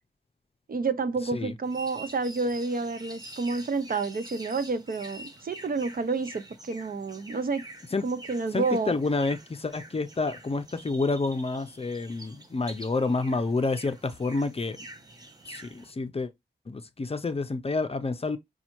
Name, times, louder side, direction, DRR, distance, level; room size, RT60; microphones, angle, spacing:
voice 1, 0.7-7.6 8.0-8.9, right 4 dB, 50° right, 0.5 m, -29 dB
sound 1, 1.6-15.9, right 1 dB, 20° right, 0.8 m, -47 dB
voice 2, 8.5-14.8 15.5-16.3 16.7-18.4, left 3 dB, 30° left, 0.5 m, -29 dB
5.4 x 2.3 x 2.9 m
wide cardioid pair, 100°, 19 cm